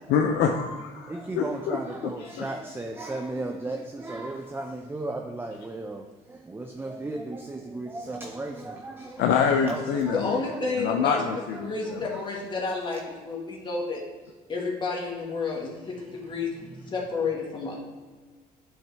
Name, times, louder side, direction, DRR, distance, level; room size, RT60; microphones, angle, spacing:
voice 1, 0.1-1.8 2.4-2.5 9.2-10.4 10.8-12.0, left 6 dB, 85° left, 3 dB, 0.6 m, -25 dB
voice 2, 1.0-9.2 9.6-12.2, right 2 dB, 15° right, 3 dB, 0.5 m, -36 dB
voice 3, 10.1-14.1 14.5-16.6 16.9-17.8, left 4 dB, 30° left, -3 dB, 1.8 m, -31 dB
8.9 x 5.5 x 3.4 m, 1.4 s
cardioid pair, 110°, 17 cm